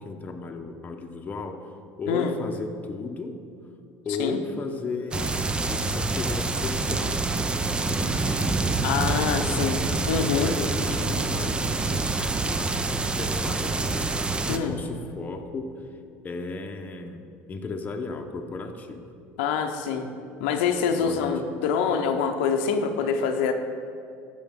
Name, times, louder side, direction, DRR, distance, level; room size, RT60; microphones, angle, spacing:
voice 1, 0.0-3.4 4.0-7.3 7.6-9.7 10.4-12.2 12.6-15.8 16.2-19.0 21.0-21.4, left 3 dB, 25° left, 4 dB, 0.8 m, -35 dB
sound 1, 5.1-14.6, right 3 dB, 15° right, 0.5 m, -26 dB
voice 2, 8.8-9.8 10.1-10.6 14.5-14.8 19.4-20.1 20.4-23.5, left 6 dB, 90° left, 5 dB, 0.7 m, -25 dB
13.5 x 6.1 x 3.7 m, 2.5 s
supercardioid pair, 115°, 6 cm